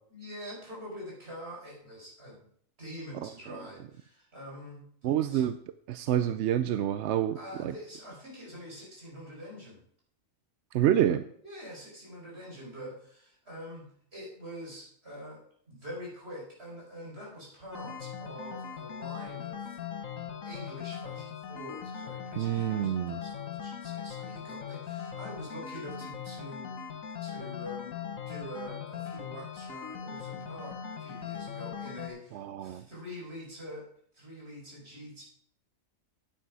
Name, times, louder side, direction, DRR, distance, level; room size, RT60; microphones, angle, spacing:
voice 1, 0.1-2.3 2.8-4.9 5.3-5.4 7.3-9.8 11.4-15.4 15.7-19.8 20.4-26.9 27.2-33.8 34.1-35.2, equal, 50° right, -3 dB, 5.1 m, -45 dB
voice 2, 5.0-5.6 5.9-7.7 10.7-11.2 22.4-23.2 32.3-32.8, right 11 dB, 65° right, 11 dB, 0.8 m, -28 dB
sound 1, 17.7-32.1, left 7 dB, 80° left, 1.6 m, -40 dB
9.6 x 9.3 x 4.8 m, 0.63 s
omnidirectional pair, 1.4 m